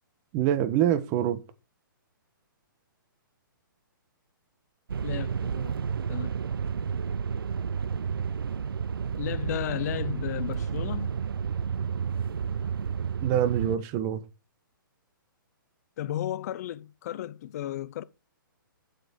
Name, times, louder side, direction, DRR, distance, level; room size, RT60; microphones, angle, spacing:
voice 1, 0.3-1.4 13.2-14.2, right 11 dB, 30° right, 1.3 m, -25 dB
sound 1, 4.9-13.8, right 7 dB, 85° right, 0.5 m, -31 dB
voice 2, 5.0-5.7 6.1-6.3 9.1-11.1 16.0-18.0, left 12 dB, 45° left, 0.7 m, -34 dB
8.2 x 7.9 x 4.6 m
hypercardioid pair, 135°, 12 cm